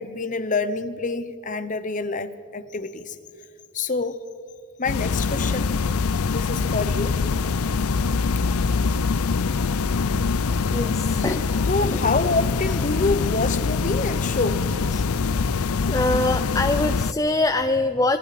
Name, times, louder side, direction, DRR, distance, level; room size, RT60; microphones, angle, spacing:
voice 1, 0.0-3.2 3.7-4.2 4.8-5.7 6.3-7.2 11.7-14.6, left 3 dB, 35° left, 1.0 m, -26 dB
sound 1, 4.9-17.1, left 4 dB, 85° left, 0.6 m, -24 dB
voice 2, 10.7-11.5 11.8-12.0 14.9-15.1 15.9-18.2, left 2 dB, 15° left, 0.5 m, -23 dB
26.5 x 23.0 x 4.3 m
head